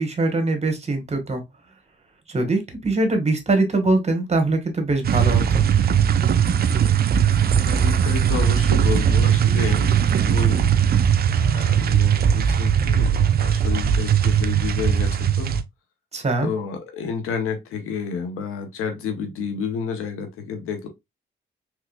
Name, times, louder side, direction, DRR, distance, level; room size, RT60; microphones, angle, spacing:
voice 1, 0.0-1.4 2.3-5.6 16.1-16.5, right 2 dB, 30° right, 1.3 m, -22 dB
sound 1, 5.0-15.6, right 8 dB, 50° right, 0.4 m, -19 dB
voice 2, 7.6-10.7 11.3-15.6 16.4-20.9, left 6 dB, 90° left, 0.8 m, -30 dB
3.5 x 3.2 x 2.2 m
cardioid pair, 65°, 21 cm